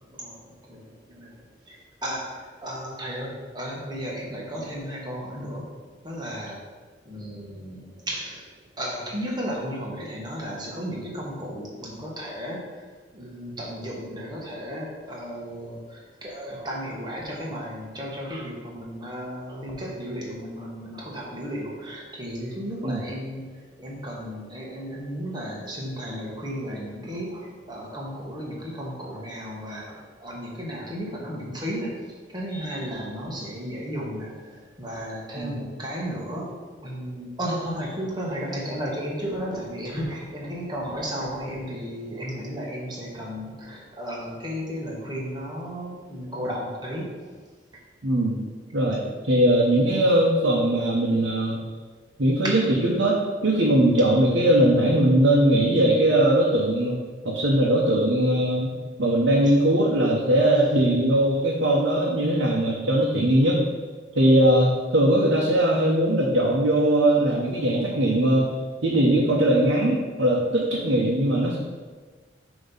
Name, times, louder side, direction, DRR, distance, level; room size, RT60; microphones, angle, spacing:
voice 1, 0.1-1.8 2.0-5.7 6.0-6.7 7.0-8.4 8.8-47.4 59.4-59.5, equal, 20° right, -3 dB, 1.3 m, -34 dB
voice 2, 48.0-48.4 48.7-51.6 52.2-58.7 59.0-63.6 64.1-68.6 68.8-71.6, right 1 dB, 75° right, -4 dB, 0.9 m, -20 dB
7.3 x 3.1 x 5.5 m, 1.4 s
head